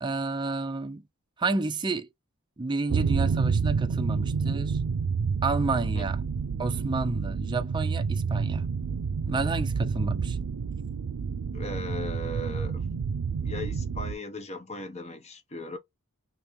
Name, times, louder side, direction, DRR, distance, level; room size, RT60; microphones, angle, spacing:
voice 1, 0.0-1.0 1.4-2.1 2.6-4.8 5.4-6.2 6.6-8.7 9.3-10.4, right 3 dB, 20° right, 0.4 m, -30 dB
sound 1, 2.9-14.2, right 5 dB, 90° right, 0.4 m, -29 dB
voice 2, 11.5-12.9 13.4-15.8, left 1 dB, 30° left, 0.8 m, -37 dB
3.4 x 3.0 x 3.0 m
head